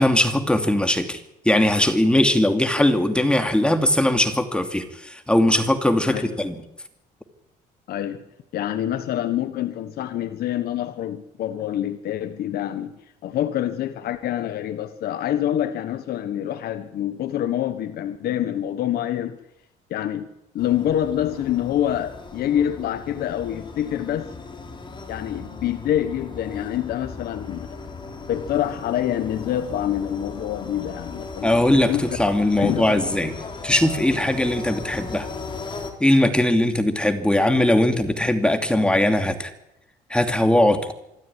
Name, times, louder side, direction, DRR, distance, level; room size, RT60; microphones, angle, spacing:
voice 1, 0.0-6.6 31.4-33.3 33.6-35.3 36.0-39.5 40.1-40.9, left 1 dB, 5° left, 7 dB, 2.7 m, -20 dB
voice 2, 7.9-8.2 8.5-12.9 13.2-19.4 19.9-20.3 20.5-24.3 25.1-27.8 28.3-32.2 32.6-33.3, left 11 dB, 65° left, 9 dB, 1.3 m, -26 dB
sound 1, 20.6-35.9, left 4 dB, 30° left, 3.8 m, -37 dB
25.5 x 12.5 x 10.0 m, 0.84 s
cardioid pair, 110°, 17 cm